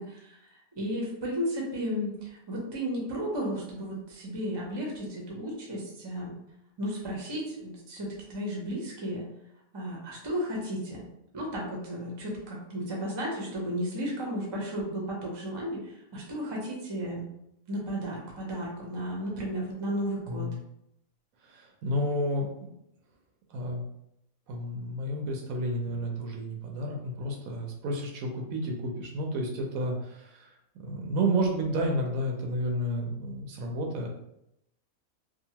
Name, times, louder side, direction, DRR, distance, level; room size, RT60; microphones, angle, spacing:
voice 1, 0.0-6.4 6.8-9.2 9.7-11.1 11.3-17.3 17.7-20.5, equal, 30° right, -2 dB, 0.5 m, -34 dB
voice 2, 20.3-20.6 21.4-22.7 23.5-23.8 24.5-34.1, right 1 dB, 75° right, 1 dB, 1.0 m, -31 dB
2.8 x 2.4 x 2.8 m, 0.80 s
omnidirectional pair, 1.5 m